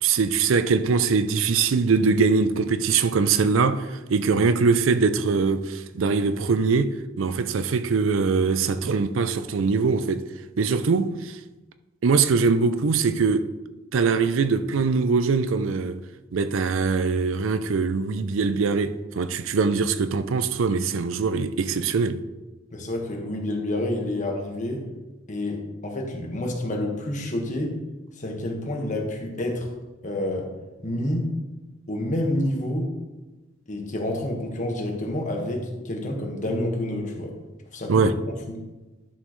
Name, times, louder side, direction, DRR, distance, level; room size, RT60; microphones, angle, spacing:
voice 1, 0.0-10.2 10.6-11.4 12.0-13.5 13.9-16.0 16.3-22.2 37.9-38.2, right 4 dB, 70° right, 0.5 m, -22 dB
voice 2, 22.7-24.8 25.3-27.8 28.2-29.7 30.0-30.5 30.8-31.3 31.9-32.9 33.7-37.3 37.7-38.1 38.5-38.6, left 1 dB, 40° left, 1.5 m, -28 dB
11.0 x 6.3 x 3.1 m
head